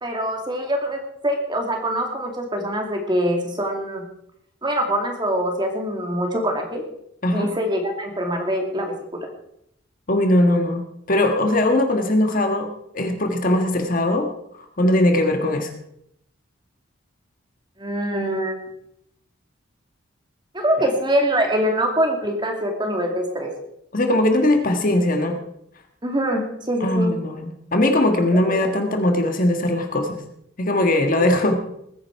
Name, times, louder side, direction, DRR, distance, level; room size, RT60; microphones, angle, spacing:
voice 1, 0.0-4.0 4.6-6.8 7.3-9.3 17.8-18.6 20.5-23.5 26.0-27.1 31.2-31.3, equal, 20° right, 3 dB, 2.4 m, -24 dB
voice 2, 10.1-14.3 14.8-15.7 20.8-20.9 23.9-25.3 26.8-30.2 30.6-31.6, left 1 dB, 40° left, 4 dB, 1.6 m, -20 dB
20.5 x 9.9 x 4.6 m, 0.75 s
head